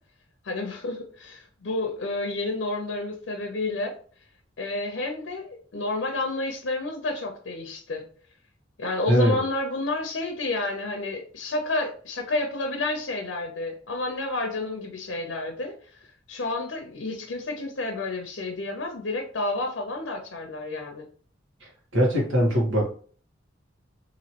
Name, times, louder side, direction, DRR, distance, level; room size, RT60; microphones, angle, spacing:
voice 1, 0.4-3.9 4.6-8.0 8.8-15.7 16.3-21.1, left 2 dB, 90° left, 4 dB, 0.6 m, -30 dB
voice 2, 9.1-9.4 21.9-23.0, equal, 90° right, -2 dB, 1.3 m, -21 dB
3.0 x 2.7 x 2.8 m, 0.44 s
head